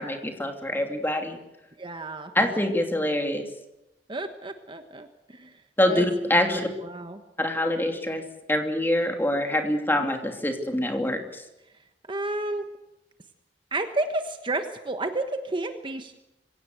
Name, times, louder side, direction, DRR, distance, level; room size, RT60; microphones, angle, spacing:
voice 1, 0.0-1.4 2.3-3.4 5.8-6.7 7.4-8.2 8.5-11.4, left 1 dB, 10° left, 4 dB, 2.8 m, -25 dB
voice 2, 1.8-2.3 4.1-5.5 5.9-6.1 6.3-7.2 12.1-12.6 13.7-16.2, right 2 dB, 30° right, 7 dB, 1.2 m, -31 dB
25.0 x 17.0 x 8.0 m, 0.92 s
head